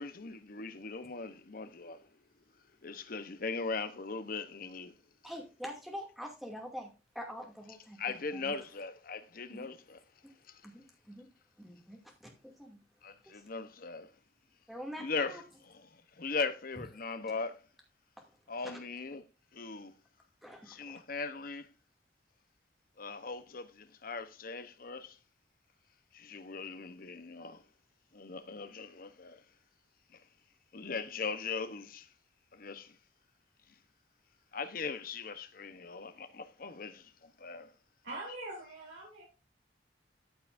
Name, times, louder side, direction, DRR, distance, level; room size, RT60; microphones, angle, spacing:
voice 1, 0.0-2.0 2.8-5.0 8.0-10.0 10.5-10.6 13.0-14.1 15.0-17.6 18.5-19.2 19.5-19.9 20.7-21.7 23.0-25.2 26.1-27.6 28.1-29.4 30.7-32.1 32.5-33.0 34.5-37.7, left 4 dB, 50° left, 0.9 m, -39 dB
voice 2, 5.2-6.9 7.1-8.0 8.3-8.5 9.5-9.7 10.6-11.3 11.6-12.0 12.4-12.8 14.7-15.4 18.6-18.8 20.4-20.8, equal, ahead, 2.4 m, -45 dB
voice 3, 38.0-39.2, right 2 dB, 75° right, 3.6 m, -43 dB
14.0 x 5.8 x 2.6 m
head